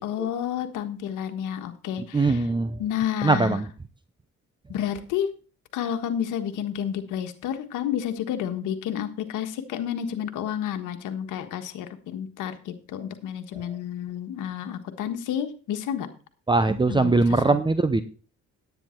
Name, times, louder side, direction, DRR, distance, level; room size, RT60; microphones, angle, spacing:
voice 1, 0.0-2.5 2.8-3.6 4.7-5.3 5.7-16.1 16.9-17.6, left 9 dB, 90° left, 7 dB, 1.4 m, -30 dB
voice 2, 2.1-2.8 3.2-3.6 16.5-18.0, right 3 dB, 15° right, 11 dB, 0.7 m, -21 dB
10.0 x 9.2 x 4.4 m, 0.37 s
cardioid pair, 90°, 30 cm